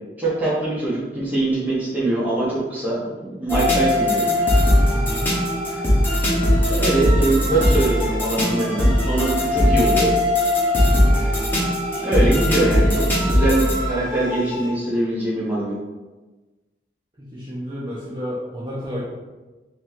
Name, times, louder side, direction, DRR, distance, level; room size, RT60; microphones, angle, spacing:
voice 1, 0.2-4.3 6.7-10.1 12.0-15.7, right 2 dB, 10° right, -8 dB, 1.1 m, -23 dB
sound 1, 3.5-14.7, left 1 dB, 10° left, 1.2 m, -19 dB
voice 2, 4.9-5.3 11.0-11.3 17.2-19.0, equal, 25° right, -10 dB, 0.9 m, -31 dB
4.3 x 2.9 x 3.2 m, 1.2 s
head